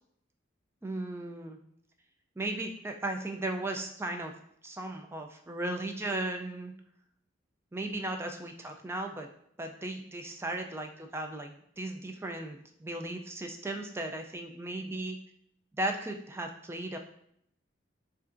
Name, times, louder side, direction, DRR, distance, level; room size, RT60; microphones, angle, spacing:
voice 1, 0.8-1.6 2.4-4.3 4.6-6.7 7.7-9.3 9.6-15.2 15.8-17.0, right 2 dB, 15° right, 4 dB, 0.3 m, -36 dB
6.9 x 2.5 x 2.5 m, 0.71 s
head